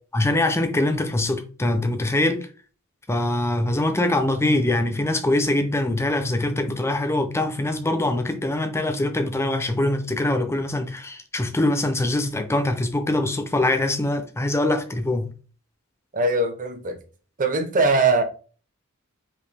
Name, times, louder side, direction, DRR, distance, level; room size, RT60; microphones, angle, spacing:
voice 1, 0.1-2.5 3.1-15.3, left 1 dB, 10° left, 0.5 m, -23 dB
voice 2, 16.1-17.0 17.4-18.2, right 3 dB, 40° right, 0.8 m, -21 dB
5.1 x 2.7 x 3.3 m
head